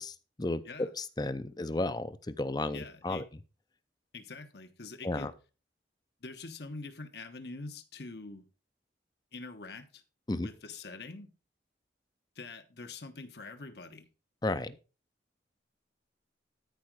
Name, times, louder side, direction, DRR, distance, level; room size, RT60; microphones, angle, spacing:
voice 1, 0.0-0.6 1.0-3.2 5.0-5.3 10.3-10.5 14.4-14.8, left 2 dB, 20° left, 0.6 m, -33 dB
voice 2, 2.7-3.2 4.1-5.3 6.2-8.4 9.3-10.0 10.3-11.3 12.3-14.0, left 3 dB, 65° left, 1.2 m, -44 dB
13.0 x 5.0 x 4.7 m
head